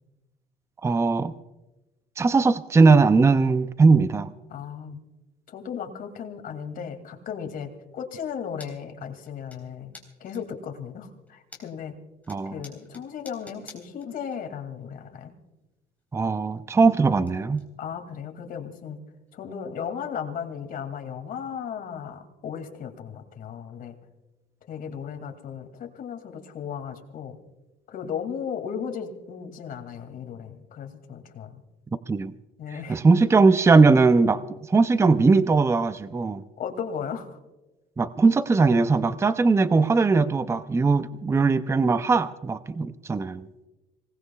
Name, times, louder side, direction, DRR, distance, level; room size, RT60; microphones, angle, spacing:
voice 1, 0.8-1.3 2.2-4.3 12.3-12.6 16.1-17.6 32.1-32.3 32.9-34.4 34.7-36.4 38.0-43.5, right 4 dB, 15° right, 13 dB, 0.5 m, -20 dB
voice 2, 4.5-5.0 5.5-9.9 10.2-12.0 12.4-15.3 17.8-19.0 19.3-24.0 24.7-27.4 27.9-31.6 32.6-33.0 36.6-37.3, left 7 dB, 60° left, 6 dB, 2.4 m, -35 dB
sound 1, 8.6-8.7 9.0-9.6 9.9-10.6 11.1-11.9 12.2-14.4 14.6-14.7 16.0-16.1 16.4-17.3 17.5-17.7 18.1-18.2 18.6-18.7 19.3-19.4 20.6-20.7, left 3 dB, 10° left, 4.0 m, -48 dB
26.5 x 18.5 x 2.3 m, 1.1 s
cardioid pair, 110°, 17 cm